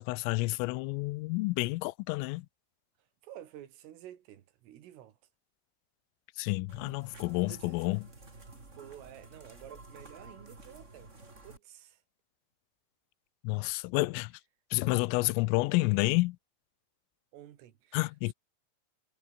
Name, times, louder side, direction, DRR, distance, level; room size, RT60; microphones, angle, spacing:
voice 1, 0.0-2.5 6.4-8.0 13.4-14.3 14.7-16.4 17.9-18.3, left 23 dB, 90° left, 3.3 m, -29 dB
voice 2, 3.2-5.2 7.5-8.0 8.8-11.1 11.4-12.0 17.3-18.0 18.2-18.3, right 12 dB, 85° right, 4.7 m, -51 dB
sound 1, 6.7-11.6, right 2 dB, 15° right, 3.4 m, -52 dB
omnidirectional pair, 5.7 m